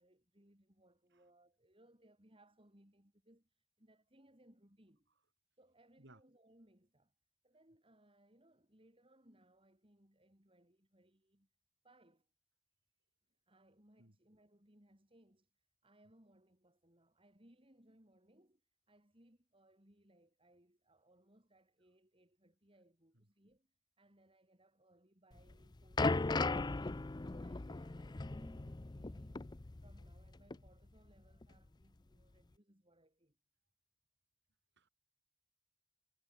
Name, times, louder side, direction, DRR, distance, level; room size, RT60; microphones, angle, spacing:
voice 1, 0.0-5.1 5.6-7.1 7.4-11.5 11.8-12.3 13.5-15.5 15.8-18.6 18.9-33.4, right 1 dB, 25° right, 3.6 m, -68 dB
voice 2, 1.1-1.2 6.0-6.2 14.0-14.2 23.1-23.2 34.8-34.9, right 1 dB, 50° right, 6.1 m, -62 dB
sound 1, 25.4-30.3 30.5-30.7 31.4-31.5, left 3 dB, 20° left, 0.4 m, -37 dB
head